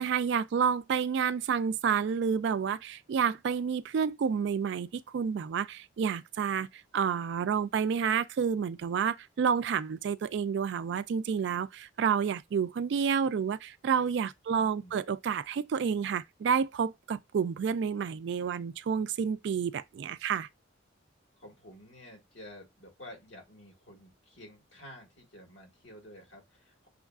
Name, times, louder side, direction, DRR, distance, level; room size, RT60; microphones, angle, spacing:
voice 1, 0.0-6.7 6.9-20.5, right 6 dB, 60° right, 0.3 m, -29 dB
voice 2, 14.5-15.0 21.4-26.9, left 1 dB, 65° left, 1.7 m, -51 dB
6.1 x 2.4 x 2.3 m
head